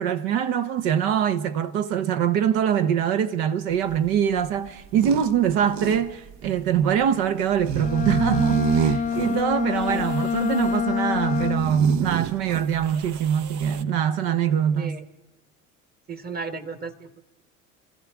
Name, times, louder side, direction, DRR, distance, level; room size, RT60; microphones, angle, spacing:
voice 1, 0.0-15.0, right 8 dB, 65° right, 1.0 m, -23 dB
sound 1, 3.7-13.8, right 10 dB, 45° right, 0.7 m, -30 dB
Bowed string instrument, 7.8-11.9, left 7 dB, 20° left, 0.4 m, -26 dB
voice 2, 16.1-17.2, right 4 dB, 25° right, 1.3 m, -35 dB
26.0 x 14.0 x 3.6 m
hypercardioid pair, 80°, 39 cm